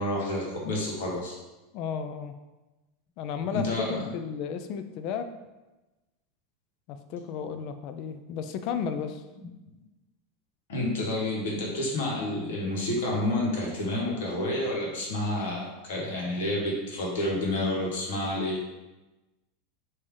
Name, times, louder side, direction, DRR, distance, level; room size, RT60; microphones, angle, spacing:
voice 1, 0.0-1.4 3.5-4.1 9.4-9.5 10.7-18.6, left 1 dB, 80° left, -3 dB, 1.2 m, -29 dB
voice 2, 1.7-2.3 3.2-5.3 6.9-9.2, left 7 dB, 55° left, 9 dB, 0.3 m, -33 dB
3.4 x 2.7 x 3.4 m, 1.1 s
hypercardioid pair, 110°, 0 cm